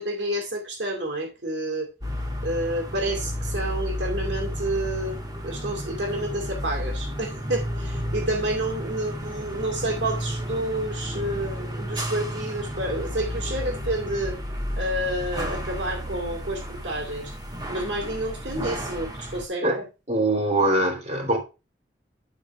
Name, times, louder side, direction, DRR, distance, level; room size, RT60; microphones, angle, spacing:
voice 1, 0.0-1.9 2.4-5.2 5.4-14.4 14.8-17.3 17.7-19.8, right 1 dB, 75° right, 2.4 m, -29 dB
sound 1, 2.0-19.4, equal, 20° right, 2.4 m, -32 dB
voice 2, 20.1-21.4, right 1 dB, 40° right, 3.3 m, -22 dB
10.5 x 4.5 x 5.8 m
head